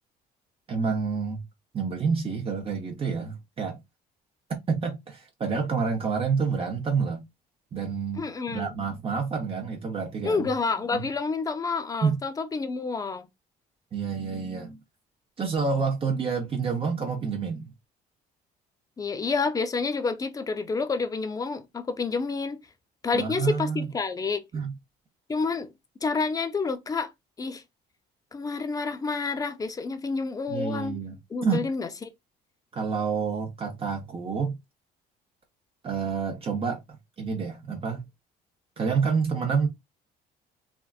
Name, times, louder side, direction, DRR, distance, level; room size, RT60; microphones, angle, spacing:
voice 1, 0.7-1.4 1.7-3.8 4.7-7.2 7.7-8.2 8.5-10.5 10.9-11.1 12.0-12.2 13.9-14.8 15.4-17.7 23.1-23.8 24.5-24.7 30.5-31.2 31.4-31.6 32.7-34.6 35.8-36.8 37.2-38.0 38.8-39.7, right 5 dB, 35° right, 0.7 m, -28 dB
voice 2, 8.1-8.8 10.2-13.3 19.0-22.6 23.0-24.4 25.3-25.7 26.0-27.1 27.4-27.6 28.3-31.0 31.3-32.1, left 4 dB, 20° left, 0.5 m, -29 dB
3.4 x 2.4 x 2.4 m
cardioid pair, 110°, 17 cm